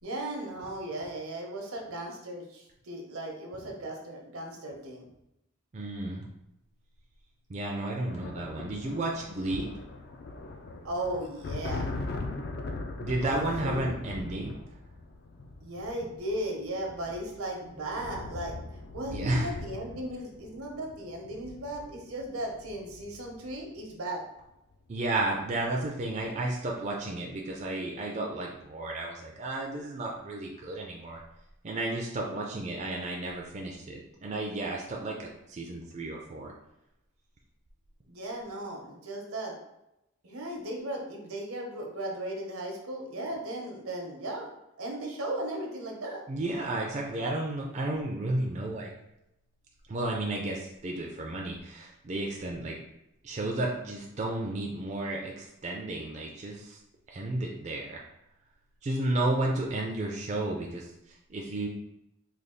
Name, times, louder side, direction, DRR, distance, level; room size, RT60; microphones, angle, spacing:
voice 1, 0.0-5.1 10.8-11.9 13.2-13.9 15.6-18.5 18.9-24.2 38.0-39.6 40.2-44.5 44.8-46.2, right 1 dB, 85° right, 0 dB, 0.8 m, -36 dB
voice 2, 5.7-6.2 7.5-9.7 13.0-14.6 19.1-19.5 24.9-31.2 31.6-36.5 46.3-48.9 49.9-52.8 53.2-56.8 57.1-58.0 58.8-61.7, right 2 dB, 30° right, -1 dB, 0.3 m, -32 dB
sound 1, 8.1-23.8 25.0-25.2 25.5-26.2, left 2 dB, 45° left, 0.3 m, -40 dB
3.4 x 2.3 x 3.6 m, 0.87 s
head